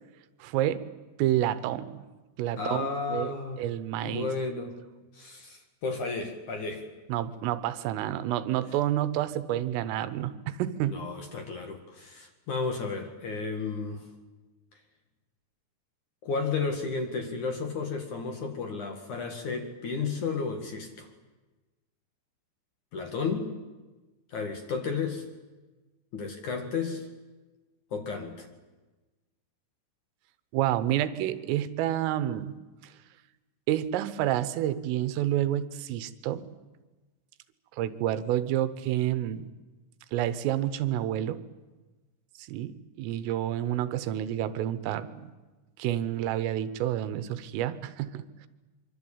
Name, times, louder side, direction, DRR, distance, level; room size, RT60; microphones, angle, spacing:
voice 1, 0.4-0.9 1.2-2.1 2.4-4.3 7.1-11.0 30.5-32.6 32.8-32.9 33.7-36.5 37.8-39.5 40.1-41.4 42.4-45.3 45.8-48.5, right 12 dB, 85° right, 14 dB, 3.7 m, -29 dB
voice 2, 2.6-3.6 4.0-4.8 5.1-6.8 10.9-14.1 16.2-21.1 22.9-23.6 24.3-25.2 26.1-27.1 27.9-28.5, left 4 dB, 50° left, 5 dB, 2.7 m, -33 dB
25.0 x 25.0 x 8.8 m, 1.2 s
omnidirectional pair, 5.8 m